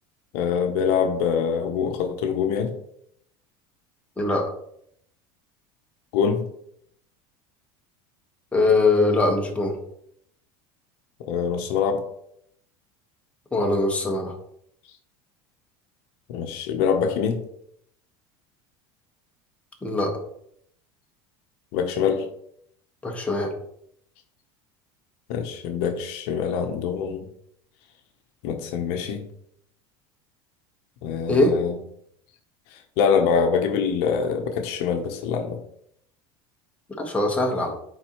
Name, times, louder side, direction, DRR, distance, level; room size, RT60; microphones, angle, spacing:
voice 1, 0.3-2.7 6.1-6.4 11.3-12.0 16.3-17.4 21.7-22.3 25.3-27.2 28.4-29.3 31.0-31.8 33.0-35.6, left 6 dB, 70° left, 5 dB, 0.9 m, -24 dB
voice 2, 4.2-4.5 8.5-9.8 13.5-14.3 19.8-20.2 23.0-23.5 31.3-31.6 37.0-37.7, left 2 dB, 10° left, 0 dB, 1.4 m, -22 dB
9.2 x 4.0 x 3.1 m, 0.71 s
supercardioid pair, 120°, 13 cm